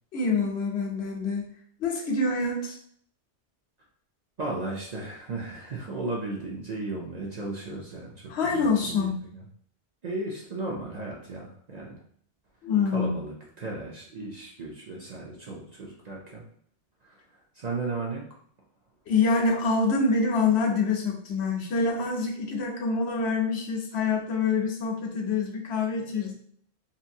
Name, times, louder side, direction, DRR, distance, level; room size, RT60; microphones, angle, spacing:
voice 1, 0.1-1.5 1.8-2.8 8.3-9.2 12.6-13.2 19.1-26.3, left 4 dB, 70° left, 1 dB, 0.9 m, -26 dB
voice 2, 4.4-9.4 10.0-12.0 12.9-16.5 17.0-18.3 25.9-26.3, right 2 dB, 50° right, -3 dB, 0.5 m, -35 dB
2.8 x 2.5 x 2.6 m, 0.62 s
omnidirectional pair, 1.2 m